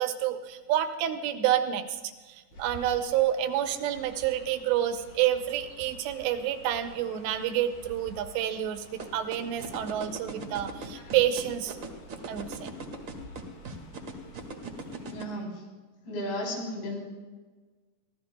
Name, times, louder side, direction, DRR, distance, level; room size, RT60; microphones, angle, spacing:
voice 1, 0.0-11.8 12.3-12.7, right 11 dB, 90° right, 7 dB, 3.1 m, -29 dB
Chirp tweet, 2.5-15.2, left 1 dB, 55° left, 2.9 m, -50 dB
sound 1, 9.0-15.2, right 4 dB, 45° right, 1.7 m, -38 dB
voice 2, 15.1-15.7 16.0-17.0, left 1 dB, 85° left, -3 dB, 6.0 m, -34 dB
25.0 x 17.0 x 2.3 m, 1.3 s
omnidirectional pair, 4.8 m